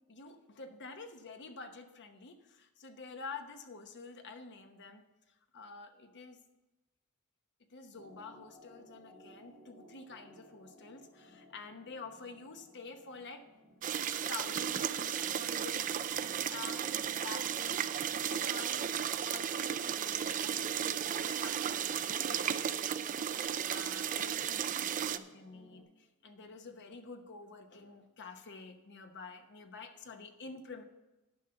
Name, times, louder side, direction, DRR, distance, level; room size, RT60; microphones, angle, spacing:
voice 1, 0.1-6.4 7.7-13.5 14.3-15.9 16.5-17.9 18.3-18.9 19.2-23.1 23.6-30.8, left 4 dB, 55° left, 7 dB, 0.9 m, -49 dB
sound 1, 7.9-25.8, equal, ahead, 3.5 m, -56 dB
sound 2, 13.8-25.2, right 9 dB, 35° right, 0.4 m, -34 dB
10.5 x 5.6 x 6.7 m, 1.0 s
head